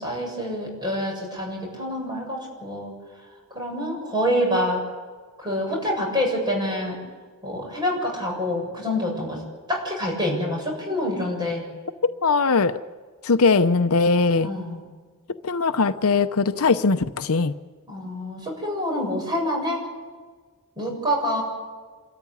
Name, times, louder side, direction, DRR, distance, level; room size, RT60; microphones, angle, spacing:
voice 1, 0.0-2.9 3.5-4.8 5.4-7.0 7.4-9.4 9.7-11.6 14.4-14.8 17.9-19.9 20.8-21.4, equal, 20° right, 0 dB, 7.6 m, -26 dB
voice 2, 12.2-12.8 13.2-14.5 15.4-17.5, left 4 dB, 70° left, 10 dB, 0.7 m, -20 dB
27.0 x 14.0 x 9.6 m, 1.4 s
head